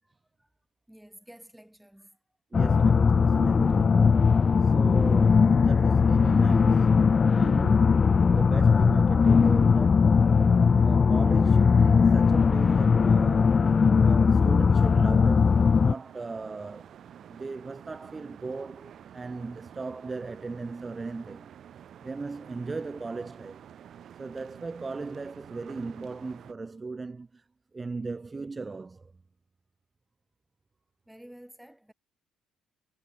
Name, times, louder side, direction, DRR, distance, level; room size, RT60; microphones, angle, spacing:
voice 1, 0.9-2.2 31.1-31.9, right 1 dB, 5° right, 6.3 m, -51 dB
sound 1, 2.5-15.9, left 5 dB, 35° left, 0.4 m, -20 dB
voice 2, 2.5-10.2 10.8-17.0 17.3-21.6 22.0-23.6 24.2-27.4 27.7-29.1, right 3 dB, 25° right, 2.4 m, -38 dB
sound 2, 13.9-26.5, right 9 dB, 55° right, 7.0 m, -50 dB
cardioid pair, 90°, 0 cm